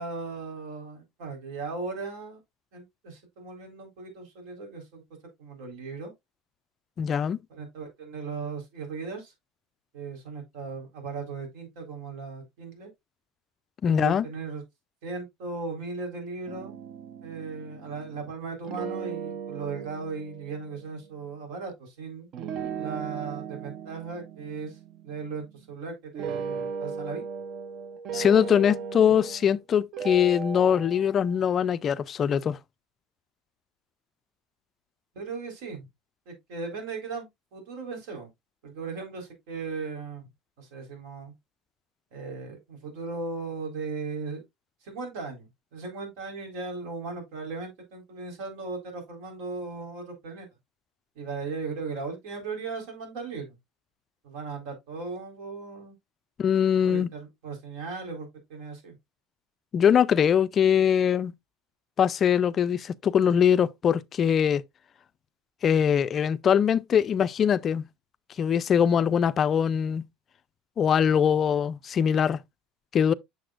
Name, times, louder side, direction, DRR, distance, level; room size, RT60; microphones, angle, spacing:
voice 1, 0.0-2.4 2.7-5.0 5.4-6.1 7.5-9.3 9.9-12.9 13.9-14.6 15.0-16.8 17.2-22.3 22.8-24.8 25.0-27.2 35.1-35.9 36.3-38.3 38.6-40.2 40.6-41.3 42.1-44.4 44.8-50.5 51.2-53.5 54.2-56.0 56.8-59.0, right 4 dB, 70° right, 3.9 m, -37 dB
voice 2, 7.0-7.4 13.8-14.3 28.1-32.6 56.4-57.1 59.7-61.3 62.0-64.6 65.6-67.9 68.4-70.0 70.8-72.4 72.9-73.1, left 8 dB, 25° left, 0.3 m, -22 dB
sound 1, 16.5-18.3 18.6-21.1 22.3-25.7 26.1-29.6 29.9-31.2, right 6 dB, 40° right, 0.6 m, -37 dB
7.8 x 6.7 x 2.4 m
cardioid pair, 170°, 0 cm